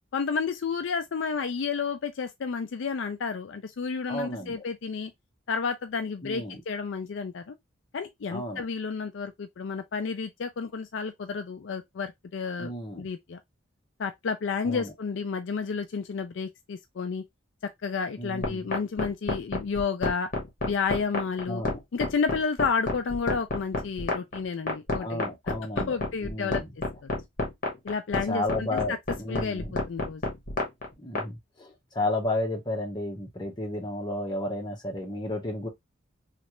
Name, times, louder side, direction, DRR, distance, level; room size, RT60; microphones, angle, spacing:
voice 1, 0.1-5.1 5.5-7.6 7.9-12.7 13.0-13.4 14.0-17.2 17.6-20.3 20.6-21.6 21.9-25.3 25.8-26.6 27.0-27.1 27.8-29.0 29.3-30.2, left 5 dB, 65° left, 0.4 m, -31 dB
voice 2, 4.1-4.6 6.2-6.6 8.3-8.6 12.6-13.1 14.6-14.9 18.2-18.7 21.5-21.8 25.0-26.7 28.3-29.8 31.0-35.7, left 1 dB, 20° left, 1.0 m, -32 dB
sound 1, 18.4-31.3, left 2 dB, 45° left, 1.1 m, -29 dB
3.2 x 2.5 x 2.9 m
head